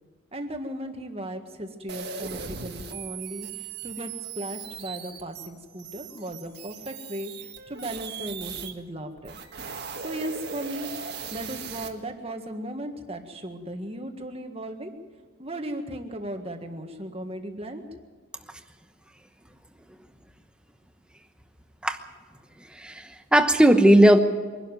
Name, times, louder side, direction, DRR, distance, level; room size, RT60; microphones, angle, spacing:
voice 1, 0.3-9.4 10.0-10.9 11.3-14.9 15.4-17.8, right 1 dB, 30° right, 5 dB, 1.7 m, -36 dB
sound 1, 1.9-8.7 9.2-11.9, right 6 dB, 50° right, 1.7 m, -38 dB
voice 2, 22.7-24.2, right 1 dB, 5° right, 7 dB, 1.0 m, -17 dB
23.5 x 12.0 x 9.3 m, 1.5 s
head